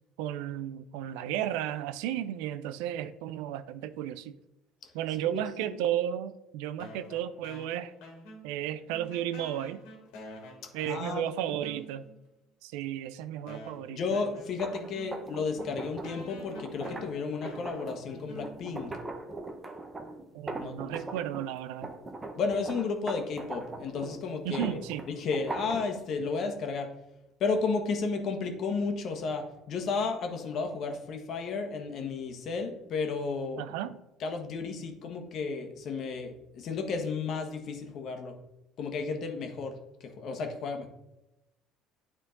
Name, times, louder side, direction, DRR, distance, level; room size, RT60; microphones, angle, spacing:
voice 1, 0.2-4.3 4.9-7.9 8.4-9.8 10.7-12.0 12.6-14.0 20.3-21.9 24.4-25.0 33.6-34.0, right 11 dB, 85° right, 0.4 m, -33 dB
sound 1, 6.8-8.6 8.9-12.2 12.9-13.0 13.5-18.9, equal, 85° left, 1.8 m, -49 dB
voice 2, 10.9-11.2 13.9-18.9 20.6-20.9 22.4-24.8 25.1-26.9 27.4-33.6 34.2-38.3 38.8-40.9, left 4 dB, 55° left, 1.3 m, -33 dB
sound 2, 14.5-21.5 21.8-26.0, right 2 dB, 20° right, 0.9 m, -41 dB
9.4 x 3.7 x 3.8 m
supercardioid pair, 95°, 0 cm